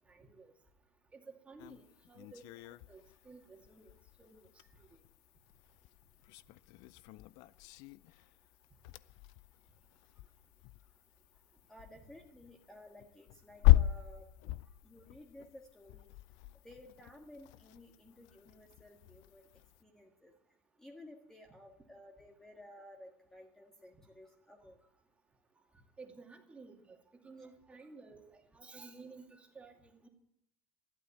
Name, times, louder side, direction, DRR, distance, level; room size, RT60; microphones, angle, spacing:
voice 1, 0.1-0.5 1.1-1.8 2.1-3.8 4.2-4.4 24.6-24.7 26.0-27.0 27.2-30.1, right 4 dB, 20° right, 2 dB, 2.4 m, -54 dB
sound 1, 1.6-19.8, left 16 dB, 70° left, 0.5 m, -37 dB
voice 2, 11.7-14.3 14.8-16.1 16.6-19.5 19.8-20.3 20.8-24.8, left 1 dB, 5° left, 2 dB, 1.7 m, -55 dB
13.0 x 11.5 x 7.2 m, 0.74 s
supercardioid pair, 110°, 7 cm